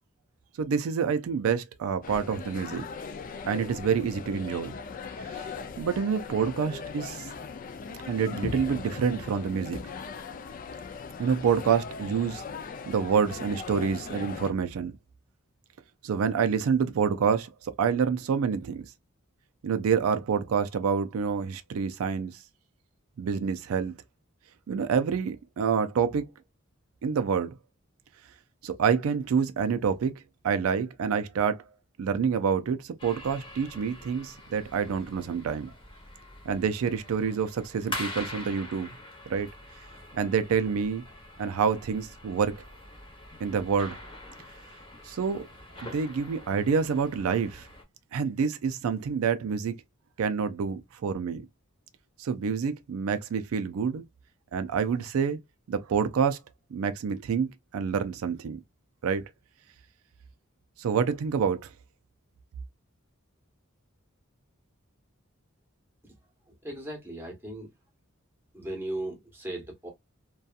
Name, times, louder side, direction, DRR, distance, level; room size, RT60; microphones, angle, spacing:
voice 1, 0.6-2.8 3.5-4.8 5.2-7.3 8.1-9.8 11.2-12.4 12.9-14.9 16.0-18.9 19.6-22.3 23.2-23.9 24.7-26.3 27.0-27.5 28.6-30.1 30.4-31.6 32.0-35.7 36.5-38.9 39.3-39.5 40.1-41.0 41.4-42.5 43.4-44.0 45.0-45.5 45.8-47.7 48.1-49.7 50.2-51.5 52.2-54.0 54.5-55.4 55.7-56.4 56.7-58.6 59.0-59.2 60.8-61.7, right 6 dB, 90° right, 0.4 m, -27 dB
sound 1, 2.0-14.5, left 5 dB, 40° left, 0.3 m, -39 dB
sound 2, 33.0-47.8, left 1 dB, 25° left, 0.9 m, -44 dB
voice 2, 66.6-67.7 68.5-69.9, right 1 dB, 10° right, 0.9 m, -37 dB
2.7 x 2.3 x 2.3 m
head